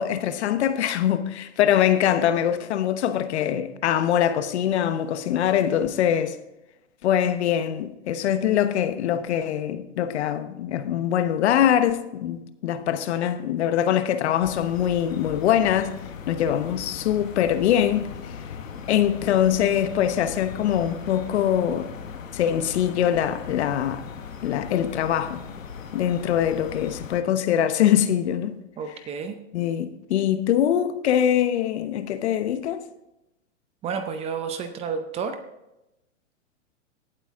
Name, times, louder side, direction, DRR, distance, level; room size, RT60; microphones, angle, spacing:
voice 1, 0.0-6.4 7.0-15.9 16.3-18.1 18.9-21.9 22.3-24.1 24.4-25.5 25.9-28.6 29.5-32.8, left 10 dB, 60° left, 1.1 m, -23 dB
sound 1, 14.4-27.2, left 6 dB, 90° left, 1.3 m, -39 dB
voice 2, 28.8-29.4 33.8-35.4, right 6 dB, 15° right, 0.6 m, -30 dB
17.0 x 8.2 x 3.6 m
hypercardioid pair, 135°, 38 cm